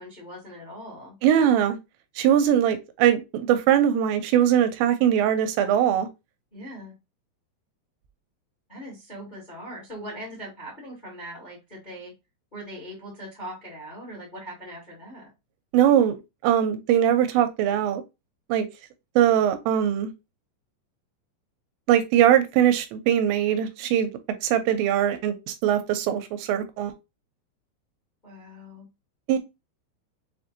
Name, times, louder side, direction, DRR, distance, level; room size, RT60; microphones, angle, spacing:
voice 1, 0.0-1.1 6.5-6.9 8.7-12.1 12.5-15.3 28.2-28.9, equal, 25° left, 0.9 m, -40 dB
voice 2, 1.2-1.8 2.2-6.1 15.7-16.2 16.4-18.0 18.5-18.7 19.2-20.1 21.9-24.1 24.4-26.9 29.3-29.4, right 10 dB, 85° right, 3.0 m, -21 dB
7.0 x 2.6 x 2.6 m
omnidirectional pair, 5.1 m